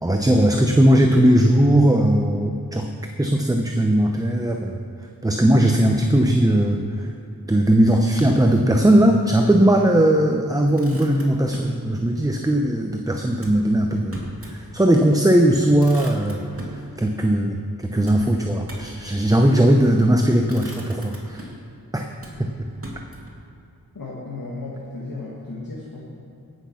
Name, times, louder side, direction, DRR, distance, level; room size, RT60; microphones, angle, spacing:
voice 1, 0.0-2.9 3.2-4.8 5.2-7.1 7.5-16.4 16.7-17.6 17.9-21.5 21.9-22.1 22.4-22.5, right 1 dB, 10° right, 3 dB, 0.7 m, -18 dB
Motor vehicle (road), 10.8-11.8 13.4-14.6 15.0-15.1 15.4-16.8 18.0-19.0 19.9-20.1 20.5-21.7 22.2-23.4, right 1 dB, 35° right, 2.5 m, -41 dB
voice 2, 23.9-26.0, left 2 dB, 65° left, -5 dB, 1.8 m, -34 dB
16.5 x 6.3 x 5.8 m, 2.7 s
wide cardioid pair, 55°, 37 cm